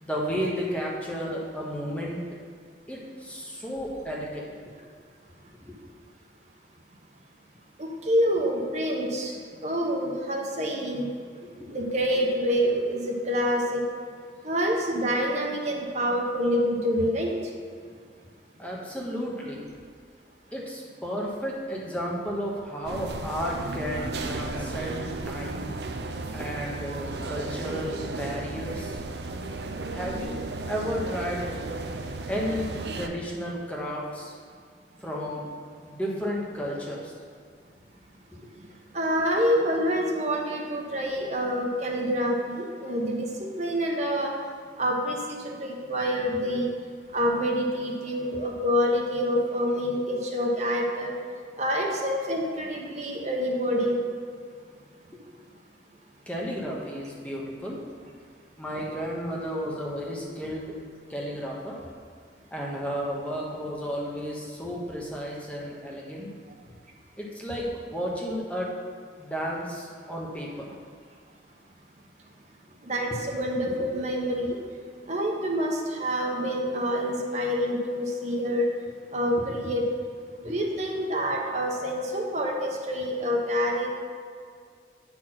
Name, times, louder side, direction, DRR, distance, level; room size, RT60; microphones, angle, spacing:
voice 1, 0.0-2.2 2.9-4.6 5.7-5.8 11.4-11.7 17.9-18.0 18.6-19.7 20.5-25.7 26.3-29.0 29.9-30.4 30.7-31.5 32.2-34.4 35.0-35.5 35.8-37.1 38.3-38.5 55.1-55.2 56.3-57.8 58.6-60.8 61.1-61.8 62.5-66.3 67.2-68.7 69.2-70.7 73.7-73.8 79.4-79.6 80.4-80.6, equal, 10° left, -3 dB, 1.0 m, -33 dB
voice 2, 7.8-11.1 11.7-13.9 14.4-17.5 38.6-44.4 44.8-46.7 47.1-51.1 51.5-54.1 72.8-74.6 75.1-78.7 79.1-79.8 80.4-83.9, equal, 40° right, -1 dB, 1.0 m, -27 dB
sound 1, 22.8-33.1, right 2 dB, 70° right, 0.6 m, -34 dB
9.1 x 4.4 x 5.9 m, 2.1 s
head